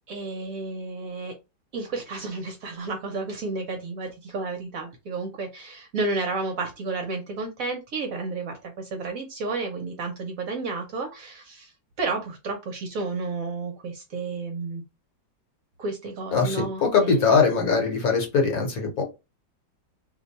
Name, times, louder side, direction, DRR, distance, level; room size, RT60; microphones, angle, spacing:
voice 1, 0.1-1.4 1.7-14.8 15.8-17.5, right 3 dB, 65° right, 4 dB, 1.0 m, -32 dB
voice 2, 16.3-19.0, left 5 dB, 60° left, 2 dB, 1.3 m, -21 dB
2.9 x 2.2 x 3.9 m, 0.26 s
omnidirectional pair, 1.9 m